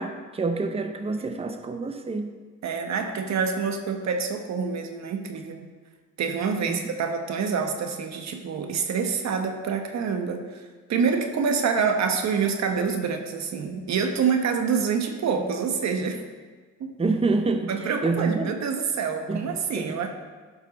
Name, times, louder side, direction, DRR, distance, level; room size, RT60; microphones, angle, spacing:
voice 1, 0.0-2.3 6.7-6.8 17.0-18.5 19.3-19.5 19.7-20.0, right 3 dB, 20° right, 7 dB, 0.7 m, -27 dB
voice 2, 2.6-5.7 6.2-16.2 16.8-17.0 17.7-20.1, right 5 dB, 65° right, 5 dB, 1.2 m, -27 dB
12.0 x 5.7 x 4.1 m, 1.4 s
cardioid pair, 90°, 30 cm